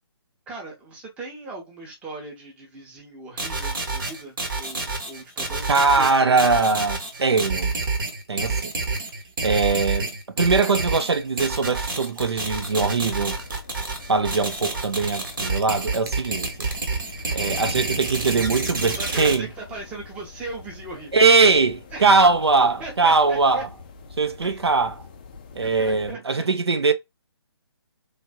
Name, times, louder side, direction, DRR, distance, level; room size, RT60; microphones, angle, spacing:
voice 1, 0.5-6.5 17.2-17.6 18.9-21.2 21.9-22.1 22.8-23.6 24.4-24.6 25.6-26.4 26.8-26.9, right 2 dB, 10° right, 0.8 m, -38 dB
sound 1, 3.4-19.3, right 3 dB, 50° right, 1.0 m, -28 dB
voice 2, 5.7-7.7 8.3-8.7 9.4-13.4 14.1-16.5 17.3-19.5 21.1-23.7 24.2-25.0 25.5-26.9, right 4 dB, 70° right, 0.5 m, -21 dB
sound 2, 12.4-26.2, left 4 dB, 20° left, 0.3 m, -45 dB
3.3 x 2.4 x 2.3 m
figure-of-eight pair, 140°, 14 cm